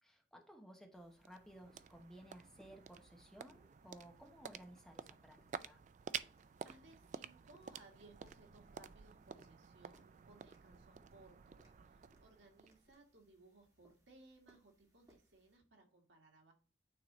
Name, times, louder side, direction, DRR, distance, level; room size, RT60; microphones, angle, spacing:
voice 1, 0.0-5.8, equal, 5° left, 2 dB, 1.0 m, -58 dB
sound 1, 0.8-13.2, right 7 dB, 45° right, 0.3 m, -52 dB
sound 2, 0.9-15.6, equal, 20° right, 2.3 m, -73 dB
voice 2, 6.6-16.5, right 2 dB, 85° right, 2 dB, 1.8 m, -64 dB
9.0 x 3.8 x 3.1 m, 0.36 s
head